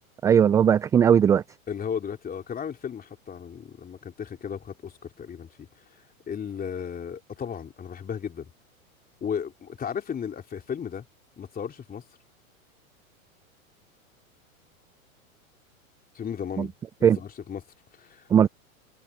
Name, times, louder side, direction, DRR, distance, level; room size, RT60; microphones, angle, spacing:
voice 1, 0.2-1.4 16.6-16.7 17.0-17.2 18.3-18.5, right 8 dB, 10° right, 0.3 m, -18 dB
voice 2, 1.7-5.7 6.3-8.5 9.2-11.0 11.4-12.0 16.1-16.7 17.0-17.6 18.0-18.3, left 7 dB, 20° left, 3.3 m, -35 dB
hypercardioid pair, 110°, 42 cm